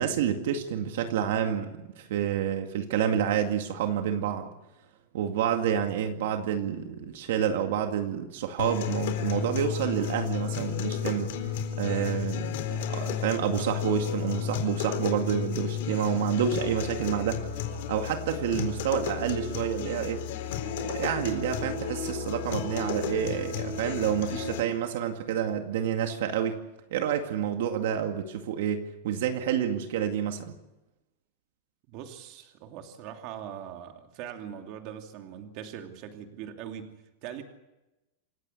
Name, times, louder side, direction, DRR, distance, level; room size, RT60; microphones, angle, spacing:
voice 1, 0.0-4.5 5.1-11.3 11.8-12.6 12.9-17.5 17.9-20.3 20.8-26.6 26.9-30.5, right 9 dB, 60° right, 5 dB, 2.2 m, -29 dB
sound 1, 8.6-24.6, left 8 dB, 50° left, 4.1 m, -33 dB
voice 2, 31.9-37.4, right 9 dB, 35° right, 5 dB, 2.7 m, -41 dB
28.0 x 15.5 x 8.5 m, 0.98 s
supercardioid pair, 180°, 0 cm